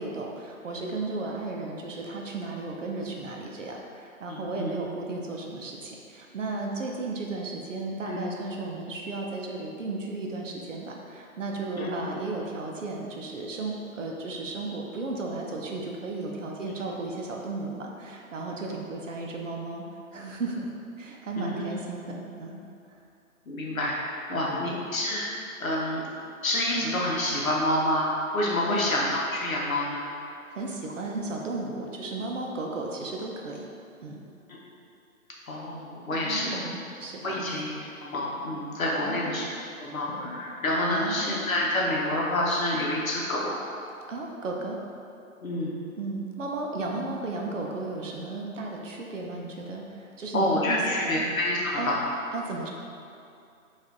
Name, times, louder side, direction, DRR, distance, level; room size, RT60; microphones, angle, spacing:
voice 1, 0.0-19.8 20.1-20.7 21.0-22.6 24.3-24.7 28.7-28.8 30.5-33.7 34.0-34.2 36.1-37.6 39.0-39.5 40.9-41.4 44.1-44.8 46.0-51.2 51.8-51.9 52.3-52.7, right 3 dB, 60° right, 0 dB, 0.6 m, -34 dB
voice 2, 4.3-4.7 8.1-8.2 11.8-11.9 21.3-21.8 23.5-25.3 25.6-26.0 26.4-30.0 35.5-36.6 37.2-37.7 38.0-39.5 39.8-43.6 45.4-45.8 50.3-52.0, left 1 dB, 70° left, -4 dB, 0.9 m, -28 dB
4.1 x 2.5 x 2.8 m, 2.5 s
figure-of-eight pair, 155°, 43 cm